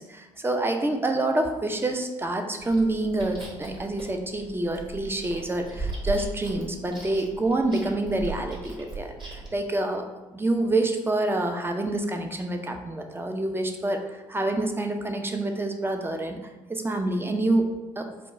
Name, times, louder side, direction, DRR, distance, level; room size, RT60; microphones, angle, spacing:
voice 1, 0.0-10.1 10.3-16.4 16.7-17.7 18.0-18.1, right 2 dB, 15° right, 4 dB, 0.6 m, -27 dB
Chewing mastication, 2.6-9.6, right 3 dB, 35° right, 1.5 m, -38 dB
4.2 x 2.4 x 4.1 m, 1.1 s
hypercardioid pair, 50°, 15 cm